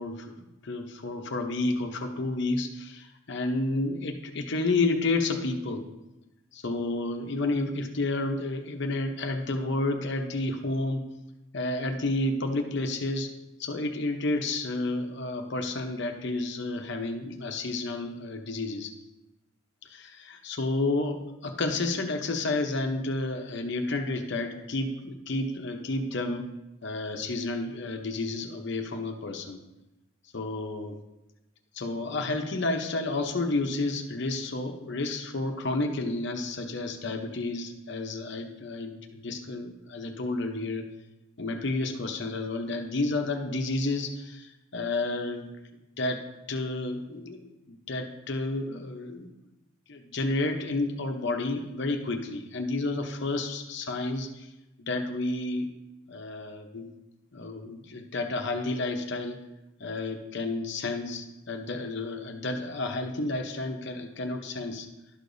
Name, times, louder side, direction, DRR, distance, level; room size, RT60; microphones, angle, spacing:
voice 1, 0.0-5.9 6.5-11.0 11.5-13.3 13.6-18.9 19.9-26.5 26.8-29.6 30.3-31.0 31.7-40.8 41.4-45.5 46.0-46.2 46.5-49.3 49.9-54.5 54.8-55.7 56.1-56.9 57.3-59.4 59.8-64.9, left 2 dB, 55° left, 5 dB, 0.7 m, -31 dB
11.5 x 6.6 x 2.6 m, 0.99 s
head